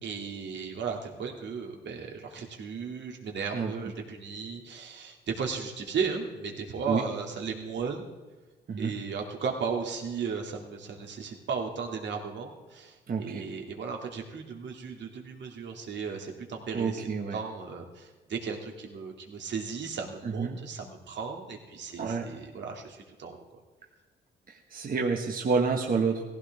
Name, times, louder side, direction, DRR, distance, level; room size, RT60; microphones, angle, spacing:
voice 1, 0.0-8.1 8.8-17.0 17.3-23.4, right 5 dB, 65° right, 2 dB, 2.5 m, -35 dB
voice 2, 13.1-13.4 16.7-17.4 20.2-20.6 22.0-22.3 24.5-26.2, right 5 dB, 45° right, 1 dB, 1.5 m, -29 dB
18.5 x 15.5 x 3.6 m, 1.3 s
cardioid pair, 90°, 20 cm